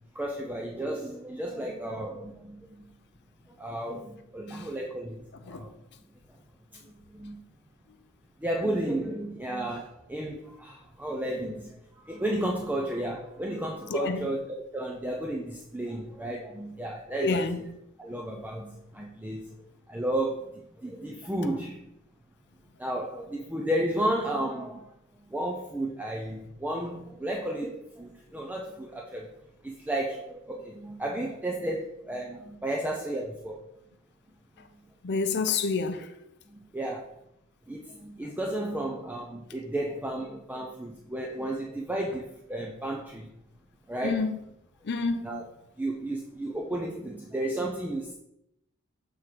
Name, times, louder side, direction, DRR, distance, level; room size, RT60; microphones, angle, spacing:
voice 1, 0.1-2.9 3.5-5.7 6.7-7.4 8.4-14.4 14.7-17.4 18.0-21.9 22.8-24.9 25.3-29.3 29.6-33.6 34.6-34.7 36.5-37.2 37.7-43.3 43.9-44.3 45.2-45.5 45.8-48.1, right 1 dB, 10° right, 0.5 m, -33 dB
voice 2, 5.3-5.7 13.9-14.3 17.2-17.8 34.6-34.7 35.0-36.1 44.0-44.4 44.8-45.4, left 4 dB, 55° left, 0.6 m, -29 dB
6.6 x 3.6 x 4.5 m
head